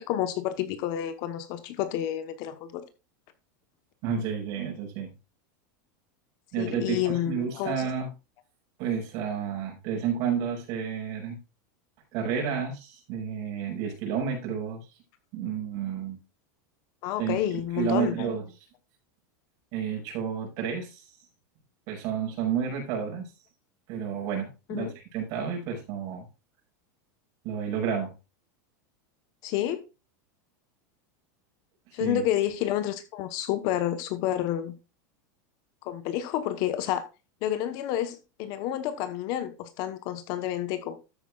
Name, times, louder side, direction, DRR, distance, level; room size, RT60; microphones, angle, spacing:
voice 1, 0.0-2.8 6.6-7.8 17.0-18.3 24.7-24.9 29.4-29.8 31.9-34.7 35.8-37.0 37.4-41.0, left 12 dB, 40° left, 1.1 m, -29 dB
voice 2, 4.0-5.1 6.5-8.1 8.8-11.4 12.1-14.9 15.3-16.2 17.2-18.4 19.7-21.1 21.9-23.3 23.9-26.3 27.4-28.1 31.9-32.2, right 7 dB, 45° right, 5.7 m, -31 dB
13.0 x 8.3 x 2.4 m
supercardioid pair, 165°, 10 cm